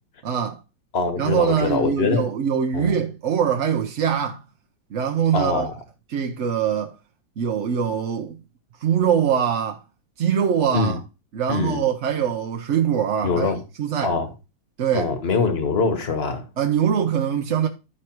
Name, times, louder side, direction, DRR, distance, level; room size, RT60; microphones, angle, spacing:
voice 1, 0.2-0.6 1.2-4.4 4.9-5.7 6.1-7.0 7.4-8.4 8.8-9.8 10.2-11.0 11.3-14.1 14.8-15.1 16.6-17.7, right 8 dB, 60° right, 0.8 m, -23 dB
voice 2, 0.9-2.3 2.7-3.0 5.3-5.7 10.7-11.0 11.5-11.9 13.2-13.6 14.0-14.3 14.9-16.5, left 4 dB, 35° left, 1.4 m, -23 dB
12.0 x 4.7 x 4.5 m
omnidirectional pair, 2.0 m